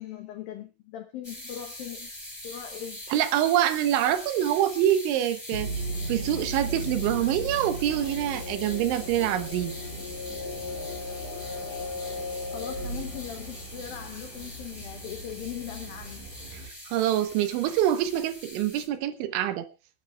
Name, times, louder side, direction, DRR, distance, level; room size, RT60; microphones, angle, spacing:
voice 1, 0.0-2.1 2.4-3.0 12.5-16.3, left 11 dB, 90° left, 6 dB, 2.0 m, -40 dB
sound 1, 1.2-18.9, left 1 dB, 5° left, 2.6 m, -43 dB
voice 2, 3.1-5.7 6.1-9.7 16.5-16.6 16.9-19.7, right 12 dB, 80° right, 10 dB, 3.2 m, -25 dB
sound 2, 5.5-14.1, left 1 dB, 55° left, 1.4 m, -36 dB
sound 3, 5.6-16.7, right 2 dB, 50° right, 2.8 m, -44 dB
29.5 x 9.9 x 2.4 m, 0.28 s
omnidirectional pair, 5.7 m